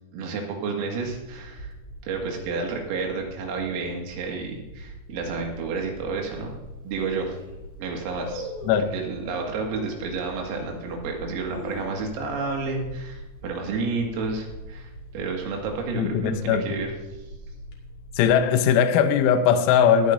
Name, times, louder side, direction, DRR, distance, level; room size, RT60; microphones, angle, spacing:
voice 1, 0.1-1.7 2.0-6.6 6.8-7.4 7.8-8.5 8.9-16.9, right 4 dB, 80° right, 4.7 m, -30 dB
sound 1, 1.0-18.3, equal, 50° left, 3.0 m, -43 dB
sound 2, 6.2-6.3 6.9-7.0 7.2-7.6 8.2-8.9 9.7-10.1 10.6-10.7 11.2-12.4 12.7-12.8 13.1-13.5 13.9-14.2 14.9-15.6 15.9-16.0, left 1 dB, 5° right, 3.5 m, -39 dB
voice 2, 16.0-16.8 18.2-20.1, left 8 dB, 85° left, 3.6 m, -20 dB
18.5 x 11.5 x 2.7 m
omnidirectional pair, 6.0 m